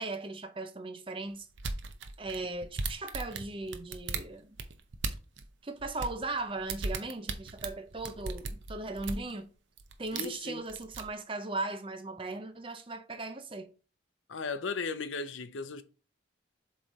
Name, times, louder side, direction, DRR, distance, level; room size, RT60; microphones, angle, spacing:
voice 1, 0.0-1.5 2.2-4.6 5.6-9.5 10.0-13.7, right 2 dB, 25° right, 0.6 m, -38 dB
sound 1, 1.6-5.4 5.8-9.3 9.8-10.4 10.7-11.1, right 4 dB, 75° right, 0.7 m, -37 dB
voice 2, 10.1-10.6 14.3-15.8, left 4 dB, 85° left, 0.6 m, -36 dB
7.3 x 3.2 x 4.0 m
head